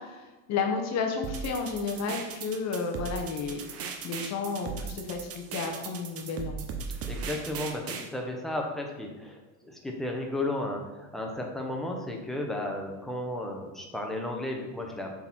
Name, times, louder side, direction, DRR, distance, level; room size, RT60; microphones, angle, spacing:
voice 1, 0.0-3.6 4.0-6.7, left 5 dB, 40° left, 3 dB, 0.9 m, -32 dB
sound 1, 1.2-8.1, right 5 dB, 35° right, 0.9 m, -37 dB
voice 2, 7.1-15.2, left 1 dB, ahead, 0 dB, 1.0 m, -34 dB
6.7 x 4.1 x 4.4 m, 1.2 s
supercardioid pair, 125°, 40 cm